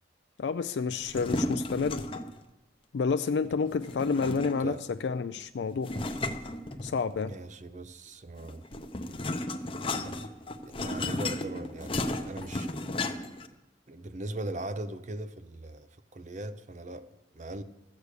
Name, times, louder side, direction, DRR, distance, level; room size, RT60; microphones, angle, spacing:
voice 1, 0.4-2.1 2.9-5.9 6.8-7.3, left 5 dB, 70° left, 0.4 m, -29 dB
sound 1, 1.0-2.4 3.8-4.8 5.8-7.2 8.4-13.5, left 2 dB, 30° left, 0.7 m, -34 dB
voice 2, 4.2-4.8 7.2-8.7 10.6-12.0 12.3-12.9 13.9-17.6, right 2 dB, 40° right, 0.6 m, -40 dB
14.0 x 8.2 x 6.6 m
head